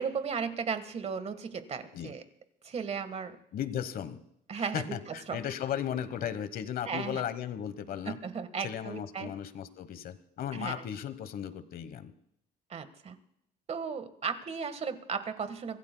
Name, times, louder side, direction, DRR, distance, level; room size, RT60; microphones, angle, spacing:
voice 1, 0.0-2.2 2.6-3.4 4.5-5.4 6.8-7.2 8.0-9.3 10.5-10.8 12.7-13.2 13.7-15.8, right 6 dB, 40° right, 11 dB, 1.4 m, -35 dB
voice 2, 3.5-4.2 4.6-8.2 8.6-12.1, left 9 dB, 60° left, 13 dB, 1.1 m, -36 dB
24.5 x 16.0 x 2.2 m, 0.78 s
cardioid pair, 110°, 17 cm